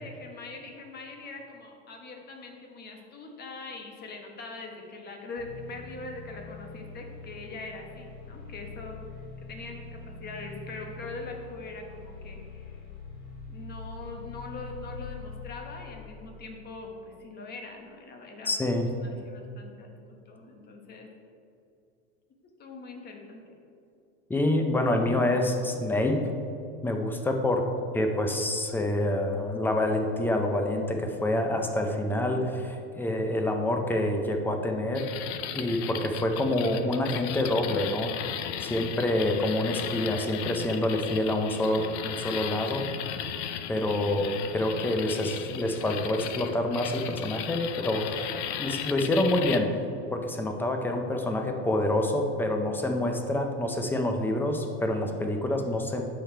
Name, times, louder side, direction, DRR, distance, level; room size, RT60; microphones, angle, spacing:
voice 1, 0.0-9.0 9.5-12.8 13.5-21.1 22.4-23.6, left 3 dB, 30° left, 2 dB, 1.3 m, -42 dB
sound 1, 5.4-16.9, left 3 dB, 55° left, 2.1 m, -44 dB
voice 2, 18.4-18.9 24.3-26.2 26.8-27.7 27.9-35.1 35.6-38.1 38.6-42.9 43.7-48.3 48.6-49.7 50.1-56.0, left 1 dB, 5° left, 4 dB, 0.6 m, -27 dB
sound 2, 34.9-49.6, left 10 dB, 75° left, 0.7 m, -36 dB
8.8 x 6.8 x 4.5 m, 2.6 s
supercardioid pair, 140°, 35 cm